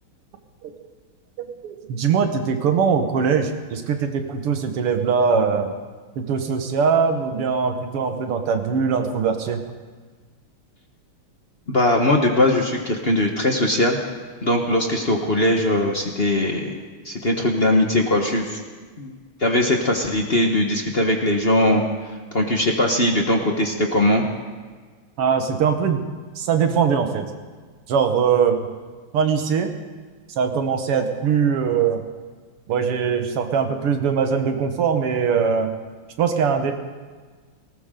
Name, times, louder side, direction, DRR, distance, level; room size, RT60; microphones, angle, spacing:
voice 1, 1.4-5.7 6.2-9.6 25.2-26.0 26.4-27.3 27.9-28.7 29.1-29.7 30.4-32.0 32.7-35.7 36.2-36.7, right 6 dB, 90° right, 6 dB, 2.3 m, -21 dB
voice 2, 11.7-14.0 14.4-16.7 17.0-18.6 19.0-19.1 19.4-21.8 22.3-24.2, left 1 dB, 35° left, 2 dB, 1.1 m, -20 dB
19.0 x 19.0 x 3.8 m, 1.5 s
omnidirectional pair, 2.4 m